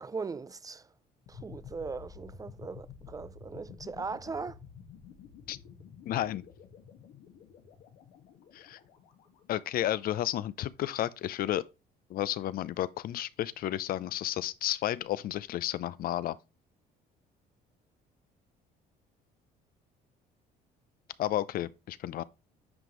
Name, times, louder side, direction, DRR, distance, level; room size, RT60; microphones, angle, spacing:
voice 1, 0.0-0.9 1.3-4.6, right 4 dB, 20° right, 0.4 m, -39 dB
sound 1, 1.3-10.1, left 6 dB, 85° left, 1.8 m, -51 dB
voice 2, 6.1-6.4 8.5-8.8 9.5-11.7 12.1-16.4 21.2-22.2, left 13 dB, 60° left, 0.6 m, -32 dB
9.6 x 5.2 x 3.1 m
cardioid pair, 110°, 17 cm